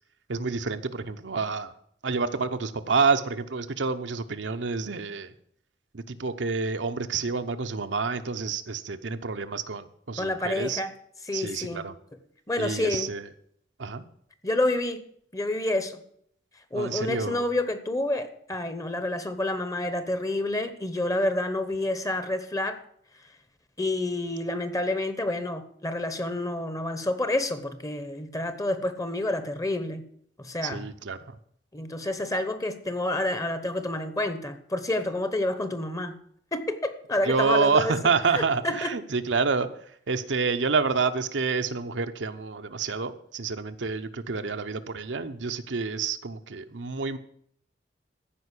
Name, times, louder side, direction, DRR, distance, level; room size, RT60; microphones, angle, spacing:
voice 1, 0.3-1.7 2.0-5.3 5.9-10.8 11.3-11.9 12.6-13.3 13.8-14.0 16.7-17.5 30.6-31.4 37.3-39.7 40.1-47.2, right 4 dB, 75° right, 0.8 m, -28 dB
voice 2, 10.2-10.9 11.3-11.8 12.5-13.1 14.4-15.1 15.3-16.0 16.7-22.8 23.8-30.0 30.4-30.9 31.7-36.2 36.5-37.9 38.3-38.9, left 1 dB, 20° left, 1.0 m, -29 dB
14.0 x 5.2 x 8.3 m
head